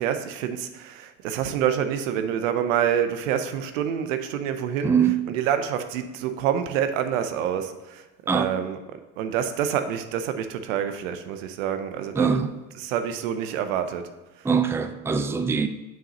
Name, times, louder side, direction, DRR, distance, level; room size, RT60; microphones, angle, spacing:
voice 1, 0.0-8.0 8.3-8.8 9.2-12.5 12.7-14.1, right 9 dB, 85° right, 0.7 m, -27 dB
voice 2, 4.8-5.2 8.3-8.5 12.2-12.5 14.4-15.7, right 6 dB, 5° right, 0.4 m, -22 dB
7.1 x 6.0 x 2.9 m
hypercardioid pair, 70°, 38 cm